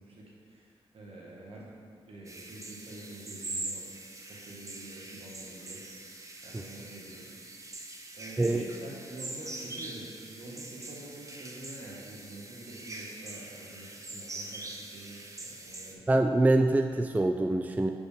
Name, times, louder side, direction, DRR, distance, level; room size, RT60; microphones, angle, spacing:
voice 1, 0.0-1.7 2.1-3.9 4.3-7.3 8.1-16.0, right 2 dB, 65° right, -4 dB, 1.6 m, -47 dB
sound 1, 2.2-15.9, right 2 dB, 30° right, 0.8 m, -43 dB
voice 2, 16.1-17.9, right 2 dB, 15° right, 5 dB, 0.3 m, -24 dB
5.4 x 4.6 x 5.1 m, 2.3 s
cardioid pair, 60°, 11 cm